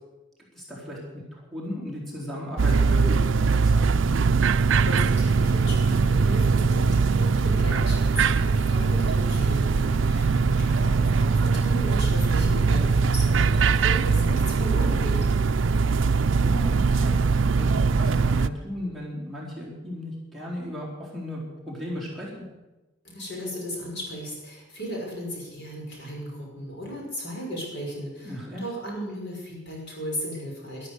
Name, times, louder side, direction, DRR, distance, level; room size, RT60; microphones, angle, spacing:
voice 1, 0.5-3.9 16.4-17.7 18.0-22.4 28.2-28.6, equal, ahead, -5 dB, 4.1 m, -36 dB
sound 1, 2.6-18.5, right 4 dB, 75° right, 0.5 m, -21 dB
voice 2, 4.8-15.2 23.0-30.9, equal, 65° left, -2 dB, 5.7 m, -35 dB
12.5 x 12.0 x 8.3 m, 1.1 s
head